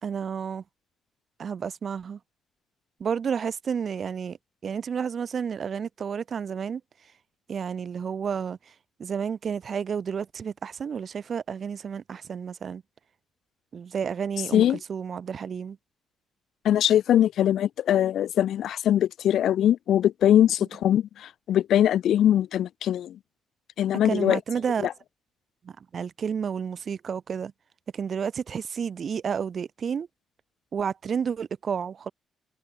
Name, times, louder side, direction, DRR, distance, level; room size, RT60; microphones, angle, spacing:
voice 1, 0.0-0.6 1.4-2.2 3.0-4.4 4.6-6.8 7.5-8.6 9.0-12.8 13.7-15.8 24.0-24.9 25.6-27.5 27.9-30.1 30.7-32.1, right 7 dB, 50° right, 5.2 m, -31 dB
voice 2, 16.6-23.2 23.8-24.4 24.8-24.9, left 11 dB, 70° left, 6.7 m, -22 dB
cardioid pair, 90°, 0 cm